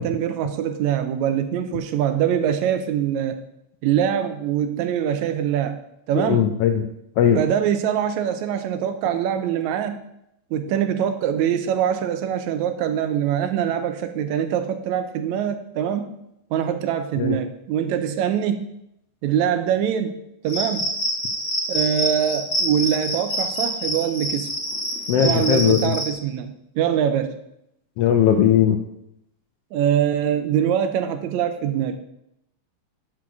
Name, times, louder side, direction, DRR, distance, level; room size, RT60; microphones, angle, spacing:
voice 1, 0.0-3.4 3.8-5.8 6.1-6.5 7.4-10.0 10.5-16.1 16.5-18.7 19.2-20.2 20.4-20.9 21.7-24.5 25.2-27.4 29.7-32.0, right 9 dB, 80° right, 9 dB, 2.0 m, -23 dB
voice 2, 6.2-6.8 7.2-7.4 17.2-17.4 25.1-25.9 28.0-28.8, left 9 dB, 75° left, 5 dB, 1.4 m, -18 dB
Cricket, 20.5-26.1, equal, 30° left, 1.6 m, -26 dB
9.1 x 6.1 x 4.7 m, 0.79 s
omnidirectional pair, 3.3 m